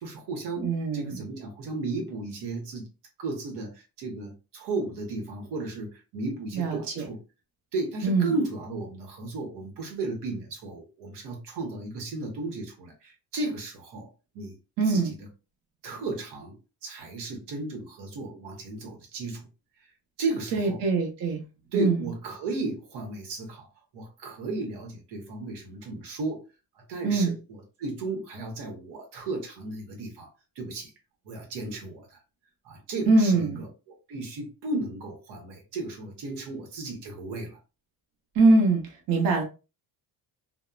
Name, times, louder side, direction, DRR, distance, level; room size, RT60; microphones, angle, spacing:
voice 1, 0.0-2.8 3.2-7.2 7.7-14.1 14.3-14.5 14.9-15.1 15.8-16.6 16.8-19.5 20.2-20.8 21.7-23.7 23.9-26.4 26.8-30.3 30.6-30.9 31.3-32.2 32.6-33.7 34.1-37.6, right 3 dB, 90° right, 0.9 m, -34 dB
voice 2, 0.6-1.2 6.5-7.1 8.0-8.3 14.8-15.1 20.5-21.4 21.7-22.0 27.0-27.3 33.1-33.6 38.3-39.4, right 3 dB, 60° right, 0.8 m, -23 dB
2.7 x 2.0 x 2.3 m
cardioid pair, 125°, 40 cm